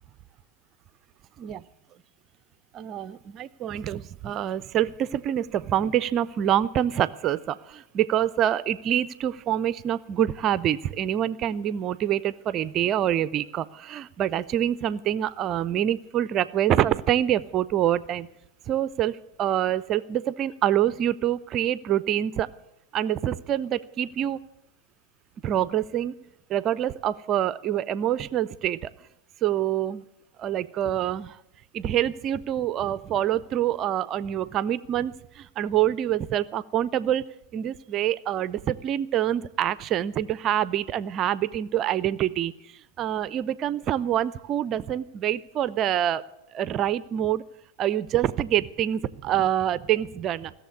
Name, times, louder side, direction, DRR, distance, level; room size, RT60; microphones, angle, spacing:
voice 1, 2.7-18.3 18.7-22.5 22.9-24.4 25.4-26.2 26.5-28.9 29.4-30.0 30.4-31.4 31.7-37.2 37.5-42.5 43.0-46.2 46.5-47.4 47.8-50.5, right 11 dB, 30° right, 18 dB, 0.4 m, -26 dB
16.5 x 7.1 x 9.6 m, 0.87 s
figure-of-eight pair, 90°, 0 cm